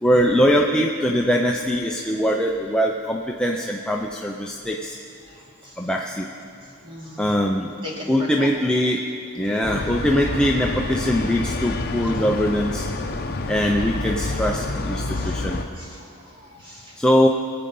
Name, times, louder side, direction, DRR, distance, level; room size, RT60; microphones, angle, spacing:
voice 1, 0.0-5.0 5.8-6.3 7.2-7.7 8.1-9.1 9.3-12.9 13.5-15.6 17.0-17.3, equal, 5° left, 0 dB, 0.5 m, -22 dB
voice 2, 5.2-5.9 6.8-7.3 7.8-8.5 15.0-17.0, left 1 dB, 25° right, -4 dB, 2.6 m, -39 dB
sound 1, 9.6-15.6, left 2 dB, 45° left, 0.8 m, -28 dB
22.5 x 8.7 x 5.4 m, 2.5 s
head